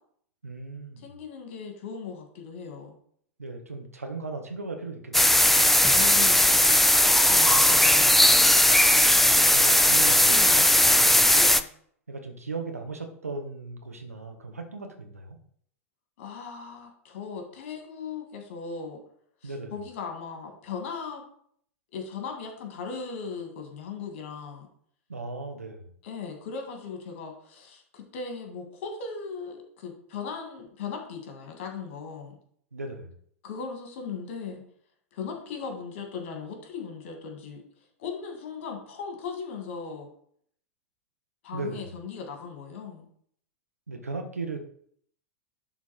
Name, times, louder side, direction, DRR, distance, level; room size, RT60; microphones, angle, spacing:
voice 1, 0.4-1.2 3.4-5.7 7.2-7.4 9.3-11.3 12.1-15.4 19.4-19.7 25.1-25.9 32.7-33.1 41.5-41.9 43.9-44.6, right 3 dB, 85° right, 4 dB, 1.5 m, -37 dB
voice 2, 1.0-3.0 5.9-8.4 10.3-10.6 11.3-11.7 16.2-19.0 19.4-21.2 21.9-24.7 26.0-32.4 33.4-34.6 35.1-37.6 38.0-40.1 41.4-43.1, left 5 dB, 55° left, 3 dB, 2.3 m, -38 dB
sound 1, 5.1-11.6, left 1 dB, ahead, 0.4 m, -18 dB
11.0 x 3.9 x 4.4 m, 0.63 s
figure-of-eight pair, 95°, 8 cm